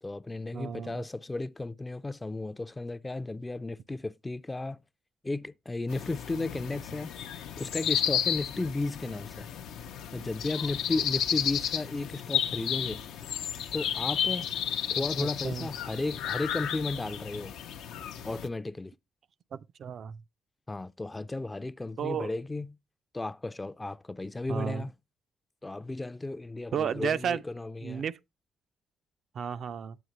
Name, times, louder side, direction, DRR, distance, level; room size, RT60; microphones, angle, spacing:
voice 1, 0.0-4.8 5.2-7.2 7.6-9.5 10.1-13.0 13.7-14.5 14.9-17.6 18.2-18.9 20.7-22.8 23.1-24.9 25.6-28.0, left 2 dB, 20° left, 0.4 m, -34 dB
voice 2, 0.5-1.0 15.4-15.7 19.5-20.2 22.0-22.3 24.5-24.8 26.7-27.4 27.8-28.2 29.3-30.0, right 7 dB, 60° right, 0.4 m, -32 dB
sound 1, 5.9-18.5, left 9 dB, 90° left, 0.6 m, -33 dB
9.2 x 7.9 x 2.9 m
cardioid pair, 90°, 0 cm